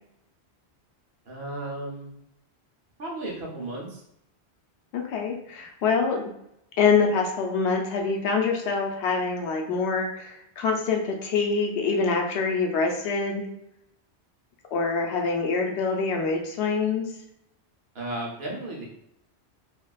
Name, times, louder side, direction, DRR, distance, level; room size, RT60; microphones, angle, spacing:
voice 1, 1.3-2.1 3.0-4.0 17.9-18.9, right 2 dB, 65° right, -2 dB, 0.9 m, -34 dB
voice 2, 4.9-6.3 6.8-13.5 14.7-17.1, left 4 dB, 75° left, 2 dB, 0.8 m, -25 dB
3.4 x 2.3 x 2.3 m, 0.78 s
omnidirectional pair, 1.1 m